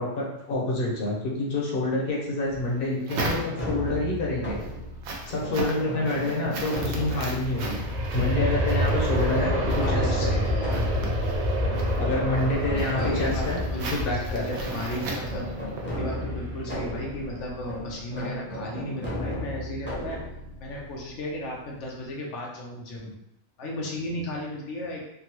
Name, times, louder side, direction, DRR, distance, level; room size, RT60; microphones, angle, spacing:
voice 1, 0.0-4.6 5.3-7.8 8.1-10.3 12.0-13.6 13.9-14.5, left 2 dB, 55° left, -3 dB, 0.9 m, -27 dB
sound 1, 2.5-3.9 4.4-16.0, right 3 dB, 70° right, 0.9 m, -38 dB
sound 2, 3.3-22.0, left 1 dB, 15° left, 0.5 m, -35 dB
Aircraft, 6.9-17.7 18.1-18.2, equal, 50° right, 0.5 m, -28 dB
voice 2, 9.3-10.9 12.9-15.4 15.9-20.2 20.6-23.1 23.6-25.0, left 1 dB, 90° left, -2 dB, 1.0 m, -35 dB
3.5 x 2.3 x 2.9 m, 0.84 s
omnidirectional pair, 1.2 m